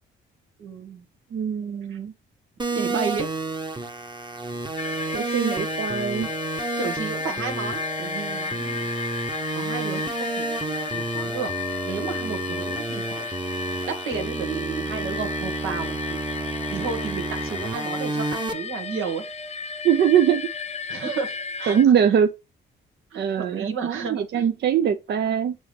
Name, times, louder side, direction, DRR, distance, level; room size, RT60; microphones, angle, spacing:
voice 1, 0.6-1.0 1.9-2.0 2.7-3.3 6.8-8.9 9.5-11.5 11.8-13.3 13.9-16.2 16.7-19.2 20.9-21.3 21.6-21.8 22.1-22.2 23.1-24.5, right 5 dB, 80° right, 1.8 m, -32 dB
voice 2, 1.3-2.1 5.1-6.3 19.8-20.5 21.0-21.2 21.7-22.3 23.2-25.6, right 8 dB, 60° right, 0.6 m, -22 dB
sound 1, 2.6-18.5, right 3 dB, 20° right, 1.1 m, -30 dB
sound 2, 4.8-21.9, left 5 dB, 35° left, 0.7 m, -33 dB
6.3 x 6.0 x 3.4 m
cardioid pair, 90°, 20 cm